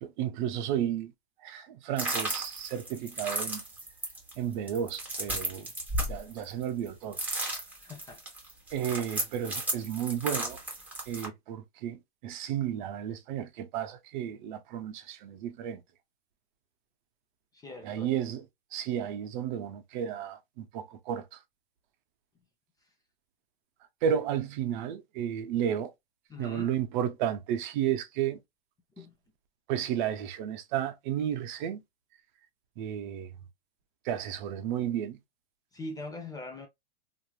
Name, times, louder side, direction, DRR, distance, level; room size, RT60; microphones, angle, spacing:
voice 1, 0.0-1.1 1.4-3.6 4.4-5.7 6.1-7.2 8.7-10.6 11.1-15.8 17.8-18.4 18.7-21.4 24.0-25.9 26.4-28.4 29.7-31.8 32.8-33.3 34.1-35.2, right 9 dB, 50° right, 0.6 m, -32 dB
sound 1, 2.0-6.9 7.1-11.3, right 1 dB, 5° right, 1.1 m, -34 dB
voice 2, 7.7-8.2 17.5-18.1 26.3-26.7 29.0-29.1 35.7-36.7, left 2 dB, 10° left, 0.4 m, -42 dB
2.9 x 2.5 x 2.3 m
hypercardioid pair, 125°, 31 cm